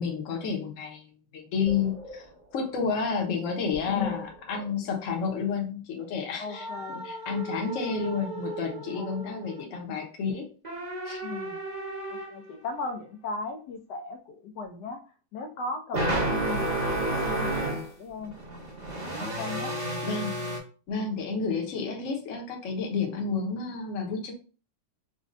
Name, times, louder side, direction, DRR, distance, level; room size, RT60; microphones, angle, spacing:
voice 1, 0.0-2.3 2.5-10.5 11.0-11.2 20.0-20.5 20.9-24.3, left 5 dB, 55° left, 2 dB, 1.1 m, -31 dB
sound 1, 1.7-2.2 2.5-2.7 3.7-4.7 6.5-9.6 10.6-12.5 15.9-17.9 18.2-20.6, right 1 dB, 30° right, 1.0 m, -32 dB
voice 2, 6.4-7.1 8.9-9.4 11.2-11.6 12.1-15.0 15.3-18.3 19.2-19.8 20.9-21.2, left 3 dB, 80° left, 5 dB, 1.2 m, -37 dB
5.2 x 2.2 x 2.5 m, 0.36 s
omnidirectional pair, 1.8 m